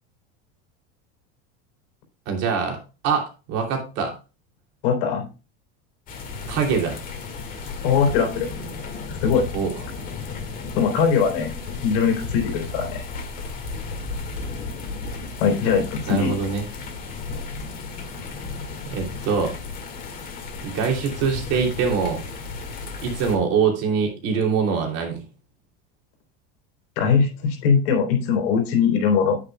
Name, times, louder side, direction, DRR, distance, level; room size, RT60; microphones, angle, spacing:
voice 1, 2.3-2.8 3.0-4.1 6.5-7.0 9.5-9.7 16.1-16.6 18.9-19.5 20.6-22.2 23.0-25.2, right 6 dB, 50° right, 1 dB, 2.9 m, -23 dB
voice 2, 4.8-5.3 7.8-8.5 9.1-9.4 10.8-11.5 11.8-13.0 15.4-16.3 27.0-29.4, left 6 dB, 75° left, 3 dB, 3.6 m, -21 dB
sound 1, 6.1-23.4, left 4 dB, 25° left, 1.9 m, -34 dB
9.2 x 8.9 x 2.3 m, 0.31 s
supercardioid pair, 160°, 31 cm